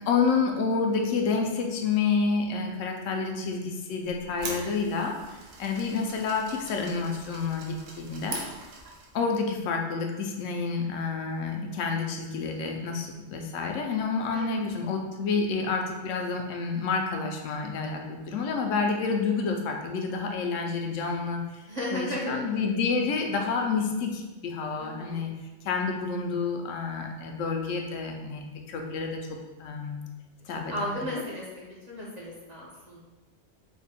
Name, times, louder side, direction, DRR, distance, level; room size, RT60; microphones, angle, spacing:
voice 1, 0.1-5.1 5.6-8.4 9.1-21.6 21.9-25.3 25.6-30.0 30.5-31.0, left 4 dB, 85° left, 2 dB, 0.9 m, -29 dB
sound 1, 4.1-9.2, right 3 dB, 85° right, 1.0 m, -42 dB
voice 2, 21.7-22.4 24.8-25.2 30.7-31.4 31.9-33.0, equal, 40° right, -5 dB, 0.7 m, -34 dB
3.4 x 2.2 x 4.1 m, 1.2 s
omnidirectional pair, 1.3 m